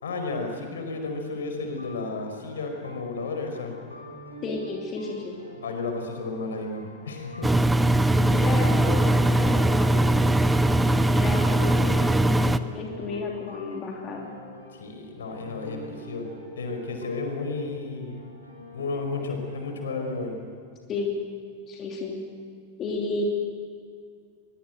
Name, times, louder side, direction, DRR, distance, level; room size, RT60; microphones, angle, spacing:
voice 1, 0.0-3.7 5.6-7.5 14.7-16.3 16.6-18.3 18.7-20.3, left 3 dB, 65° left, 4 dB, 4.8 m, -32 dB
sound 1, 1.7-20.2, equal, 85° left, 5.6 m, -46 dB
voice 2, 4.4-5.3 8.2-10.2 11.1-14.3 20.9-21.1 21.7-22.2 22.8-23.2, left 4 dB, 30° left, 1 dB, 2.9 m, -32 dB
Engine, 7.4-12.6, right 1 dB, 5° right, 0.8 m, -21 dB
23.0 x 22.5 x 8.0 m, 2.2 s
figure-of-eight pair, 90°, 0 cm